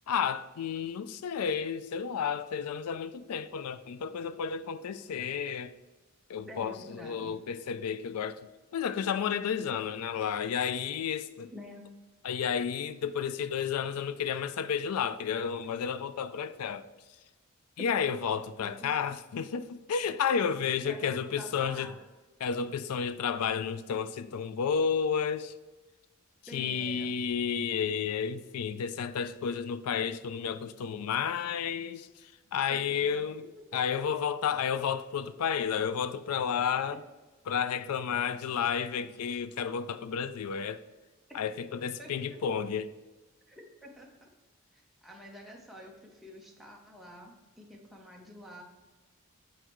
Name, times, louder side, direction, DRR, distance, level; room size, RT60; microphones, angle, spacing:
voice 1, 0.1-5.7 6.3-8.4 8.7-11.5 12.2-16.9 17.8-21.9 22.4-25.5 26.5-33.5 33.7-37.0 37.5-40.8 41.3-42.9, left 7 dB, 90° left, 0.4 m, -31 dB
voice 2, 6.5-7.4 11.5-11.8 18.6-19.0 20.8-21.9 26.5-27.1 32.7-33.9 42.0-42.5 43.5-44.3 44.7-48.6, equal, ahead, 0.8 m, -48 dB
7.9 x 4.4 x 3.1 m
head